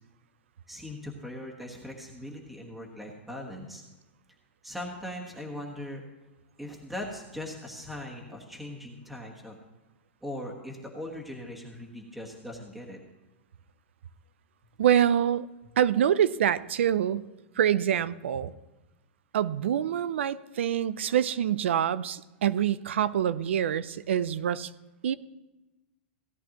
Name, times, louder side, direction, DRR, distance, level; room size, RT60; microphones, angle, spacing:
voice 1, 0.7-3.8 4.6-6.0 6.6-9.6 10.2-13.0, left 1 dB, ahead, -1 dB, 1.2 m, -40 dB
voice 2, 14.8-15.5 15.8-17.3 17.6-18.5 19.3-24.7 25.0-25.2, right 9 dB, 90° right, 17 dB, 0.5 m, -25 dB
16.5 x 10.0 x 2.9 m, 1.1 s
supercardioid pair, 160°, 6 cm